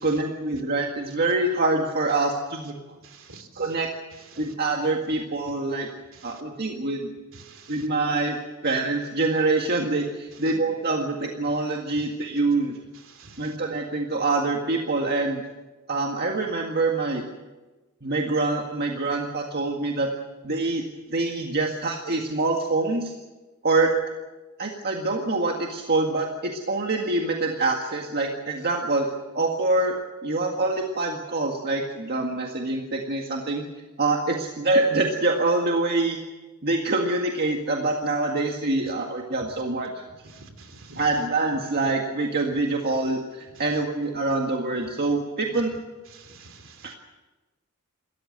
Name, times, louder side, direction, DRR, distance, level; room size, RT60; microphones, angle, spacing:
voice 1, 0.0-2.8 3.6-3.9 4.4-5.9 6.2-7.1 7.7-8.4 8.6-12.8 13.4-15.4 15.9-17.2 18.0-20.1 20.4-20.8 21.1-23.1 23.6-23.9 24.6-29.1 29.4-29.9 30.2-33.6 34.0-36.2 36.6-40.0 41.0-45.7 46.8-46.9, right 2 dB, 45° right, 1 dB, 1.9 m, -25 dB
voice 2, 3.1-3.5 7.5-7.7 10.5-10.6 13.2-13.4 40.3-41.0 46.1-46.7, right 3 dB, 60° right, 7 dB, 3.0 m, -46 dB
28.0 x 14.0 x 8.0 m, 1.2 s
head